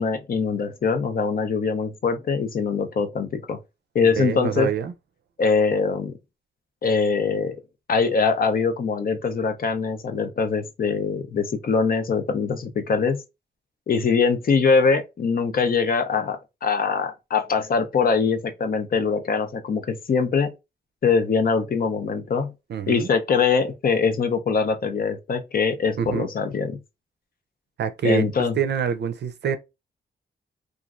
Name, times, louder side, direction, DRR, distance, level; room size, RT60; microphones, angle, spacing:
voice 1, 0.0-3.6 3.9-4.7 5.4-6.1 6.8-7.6 7.9-13.2 13.9-20.5 21.0-22.5 22.9-26.8 28.0-28.5, left 5 dB, 50° left, 0.5 m, -23 dB
voice 2, 4.2-4.9 22.7-23.1 26.0-26.3 27.8-28.3 28.6-29.6, right 6 dB, 65° right, 0.5 m, -25 dB
3.0 x 2.4 x 2.4 m
wide cardioid pair, 130°, 19 cm